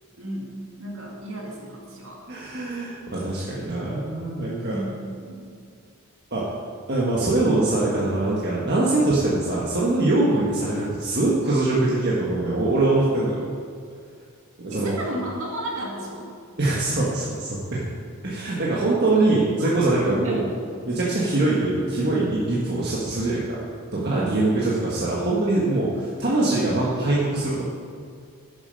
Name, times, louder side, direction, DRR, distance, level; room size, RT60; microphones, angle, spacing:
voice 1, 0.2-2.4 4.6-5.6 14.7-16.3 19.1-19.2 19.6-20.6 24.0-24.4, right 1 dB, 65° right, -3 dB, 2.3 m, -34 dB
voice 2, 2.3-4.8 6.3-6.6 6.9-13.4 14.6-15.0 16.6-17.8 18.2-20.4 20.9-23.6 23.9-27.6, right 2 dB, 45° right, -6 dB, 1.5 m, -23 dB
11.0 x 7.1 x 5.3 m, 2.2 s
head